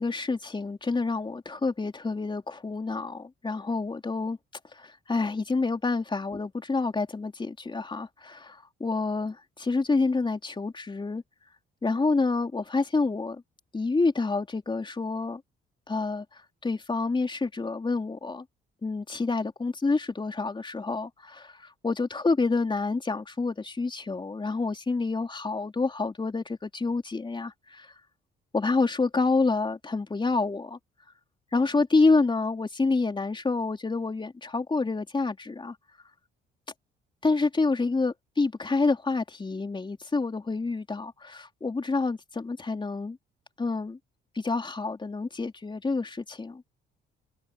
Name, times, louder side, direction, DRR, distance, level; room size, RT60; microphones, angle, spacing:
voice 1, 0.0-4.4 4.7-11.2 11.8-13.4 13.7-15.4 15.9-16.3 16.6-18.5 18.8-27.9 28.5-30.8 31.5-35.8 37.2-43.2 43.6-44.0 44.4-46.6, left 3 dB, 25° left, 3.7 m, -28 dB
cardioid pair, 90°, 20 cm